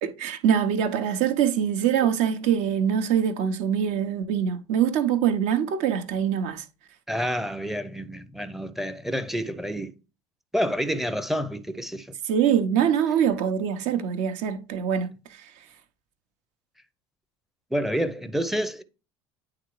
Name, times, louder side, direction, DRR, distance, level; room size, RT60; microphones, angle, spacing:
voice 1, 0.0-6.7 12.3-15.5, right 8 dB, 55° right, 0.9 m, -24 dB
voice 2, 7.1-9.9 10.5-12.1 17.7-18.8, equal, ahead, 0.6 m, -28 dB
9.7 x 3.8 x 3.2 m
figure-of-eight pair, 70°, 15 cm